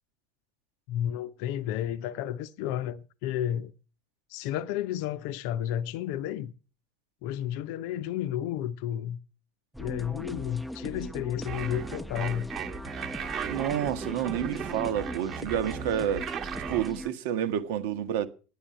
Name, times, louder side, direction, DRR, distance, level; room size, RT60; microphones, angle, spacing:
voice 1, 0.9-3.7 4.3-6.5 7.2-9.2 9.8-12.5, left 11 dB, 55° left, 0.6 m, -32 dB
sound 1, 9.7-17.1, equal, ahead, 0.9 m, -40 dB
sound 2, 11.5-16.9, right 8 dB, 40° right, 1.2 m, -37 dB
voice 2, 13.5-16.3 16.7-18.3, right 10 dB, 60° right, 1.2 m, -29 dB
10.0 x 7.7 x 8.6 m
figure-of-eight pair, 75°, 0 cm